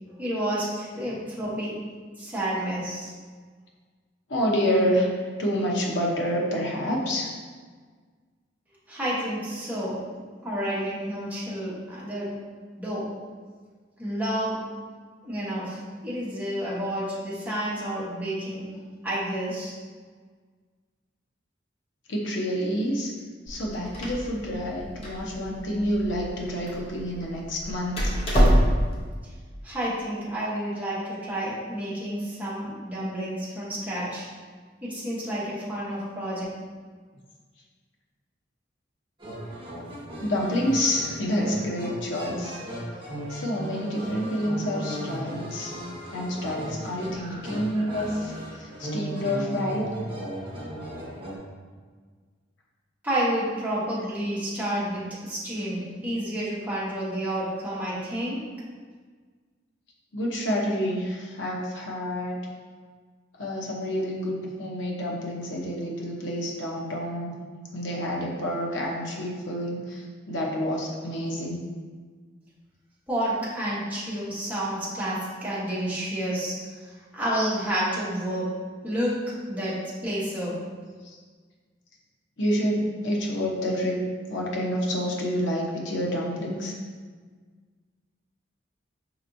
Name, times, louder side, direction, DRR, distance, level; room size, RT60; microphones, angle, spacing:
voice 1, 0.2-1.8 2.2-3.1 8.9-10.0 10.4-12.3 12.8-13.1 14.0-14.6 15.2-18.6 19.0-19.7 29.6-34.3 34.8-36.4 53.0-58.4 73.1-76.5 77.1-78.5 78.8-79.2 79.5-79.8 80.0-80.6, right 1 dB, 10° right, -8 dB, 1.1 m, -30 dB
voice 2, 4.3-5.1 5.4-7.3 22.1-23.1 23.5-28.2 40.2-42.6 43.3-45.7 46.1-49.8 60.1-62.4 63.4-67.3 67.7-71.6 82.4-84.0 84.3-86.7, equal, 80° left, -2 dB, 0.8 m, -28 dB
Door, 23.5-29.1, equal, 35° left, 0.8 m, -26 dB
sound 1, 39.2-51.4, right 1 dB, 30° right, 1.0 m, -36 dB
5.2 x 2.9 x 2.6 m, 1.5 s
head